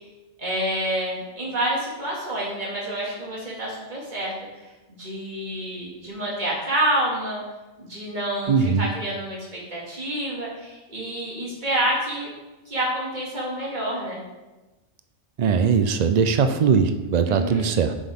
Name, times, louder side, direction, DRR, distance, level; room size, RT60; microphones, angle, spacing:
voice 1, 0.4-4.3 4.9-7.4 7.8-12.4 12.7-14.2 17.3-17.7, right 1 dB, 35° right, -5 dB, 2.2 m, -28 dB
voice 2, 8.5-8.9 15.4-17.9, right 6 dB, 70° right, 9 dB, 0.3 m, -20 dB
7.8 x 6.3 x 3.5 m, 1.1 s
omnidirectional pair, 1.3 m